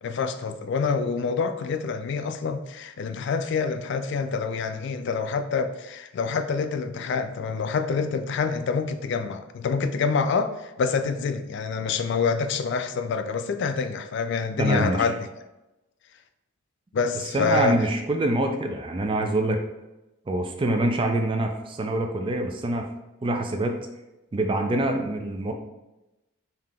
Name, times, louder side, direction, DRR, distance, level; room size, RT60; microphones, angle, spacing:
voice 1, 0.0-15.3 16.9-17.8, left 5 dB, 60° left, 8 dB, 0.3 m, -26 dB
voice 2, 14.6-15.1 17.1-19.6 20.3-22.9 23.2-23.8 24.3-25.5, right 2 dB, 25° right, 4 dB, 0.3 m, -25 dB
3.7 x 2.8 x 3.5 m, 0.98 s
head